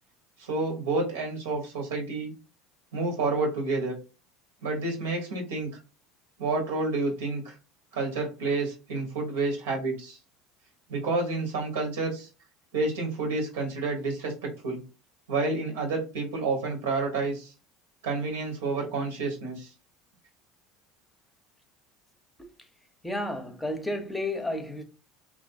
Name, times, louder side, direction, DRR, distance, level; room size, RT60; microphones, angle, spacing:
voice 1, 0.4-2.3 2.9-3.9 4.6-5.7 6.4-7.6 7.9-10.2 10.9-12.3 12.7-14.8 15.3-17.5 18.0-19.7, right 3 dB, 90° right, 1.2 m, -29 dB
voice 2, 23.0-24.8, left 1 dB, 10° left, 0.7 m, -32 dB
3.1 x 2.6 x 2.6 m
supercardioid pair, 95°, 0 cm